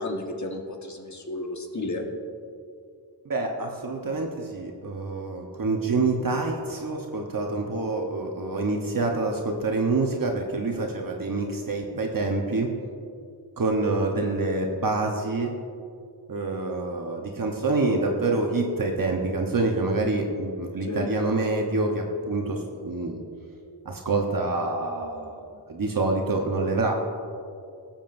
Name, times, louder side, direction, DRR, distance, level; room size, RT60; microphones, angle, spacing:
voice 1, 0.0-2.0 20.9-21.1, left 2 dB, 45° left, 2 dB, 1.3 m, -32 dB
voice 2, 3.2-12.7 13.6-15.5 16.3-23.2 23.8-27.0, right 3 dB, 55° right, 1 dB, 1.0 m, -26 dB
17.5 x 7.2 x 2.6 m, 2.4 s
wide cardioid pair, 70°, 41 cm